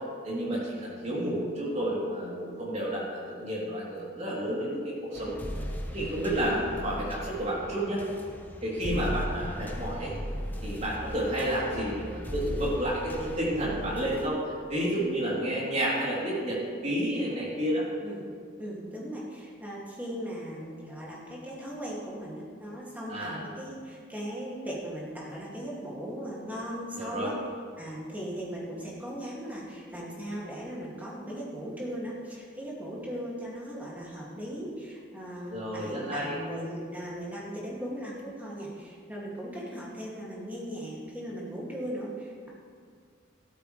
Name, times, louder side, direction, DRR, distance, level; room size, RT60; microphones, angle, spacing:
voice 1, 0.2-5.4 5.9-8.0 8.6-10.1 10.6-14.4 14.7-17.8 23.1-23.4 26.9-27.3 35.5-36.4, right 1 dB, 35° right, -6 dB, 3.4 m, -30 dB
sound 1, 5.1-14.3, equal, 10° left, 0.8 m, -37 dB
voice 2, 18.6-27.3 27.8-42.5, equal, 10° right, -5 dB, 2.4 m, -38 dB
13.5 x 13.0 x 3.4 m, 2.1 s
head